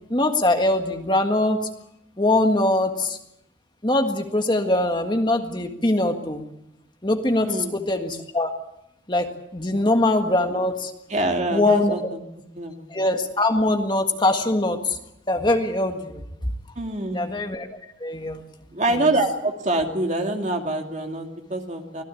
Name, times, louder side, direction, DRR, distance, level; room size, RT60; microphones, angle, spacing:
voice 1, 0.1-1.6 2.2-3.2 3.8-6.4 7.0-8.5 9.1-10.9 11.5-11.9 12.9-15.0 15.3-16.2 17.1-17.7 18.0-18.4 18.9-19.1, left 1 dB, 25° left, 5 dB, 1.7 m, -22 dB
voice 2, 7.4-7.8 9.7-9.9 11.1-12.2 12.5-12.9 16.8-17.3 18.7-22.0, right 2 dB, 40° right, 3 dB, 2.5 m, -25 dB
25.0 x 16.5 x 8.5 m, 0.83 s
head